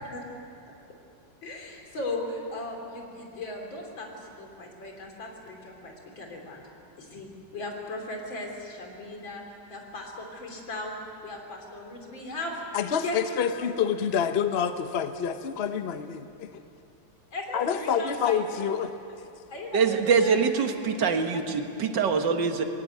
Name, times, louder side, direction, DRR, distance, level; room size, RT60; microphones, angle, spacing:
voice 1, 1.4-6.6 7.0-9.4 9.7-10.9 11.2-12.6 13.0-13.7 17.3-18.7 19.5-20.4 20.8-21.4, left 2 dB, 85° left, 1 dB, 3.9 m, -37 dB
voice 2, 12.7-16.6 17.5-19.0, left 7 dB, 50° left, 9 dB, 0.7 m, -27 dB
voice 3, 19.7-22.6, right 5 dB, 70° right, 6 dB, 2.0 m, -24 dB
21.5 x 17.0 x 9.2 m, 2.7 s
omnidirectional pair, 2.1 m